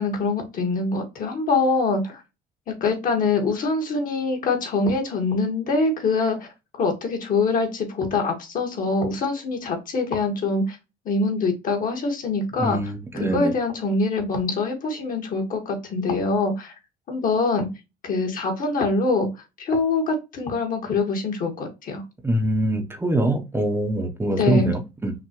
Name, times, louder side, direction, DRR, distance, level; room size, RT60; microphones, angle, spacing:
voice 1, 0.0-2.2 2.8-6.5 6.8-10.8 11.0-16.7 17.1-17.7 18.0-19.3 19.6-22.0 24.3-24.7, left 3 dB, 55° left, 2 dB, 1.7 m, -24 dB
voice 2, 12.6-13.5 22.2-25.1, right 1 dB, 15° right, 4 dB, 0.8 m, -24 dB
5.7 x 2.5 x 3.0 m, 0.26 s
cardioid pair, 110°, 17 cm